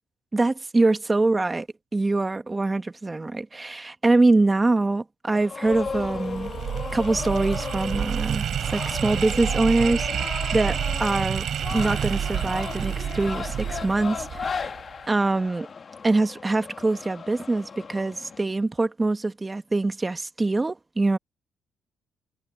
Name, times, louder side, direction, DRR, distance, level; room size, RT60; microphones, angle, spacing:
voice 1, 0.3-1.6 1.9-6.5 6.9-11.5 11.7-14.7 15.1-15.7 16.0-21.2, right 2 dB, 20° right, 1.4 m, -24 dB
sound 1, 5.3-18.4, left 5 dB, 40° left, 1.4 m, -36 dB
sound 2, 5.7-14.8, right 9 dB, 65° right, 3.6 m, -29 dB
cardioid pair, 90°, 0 cm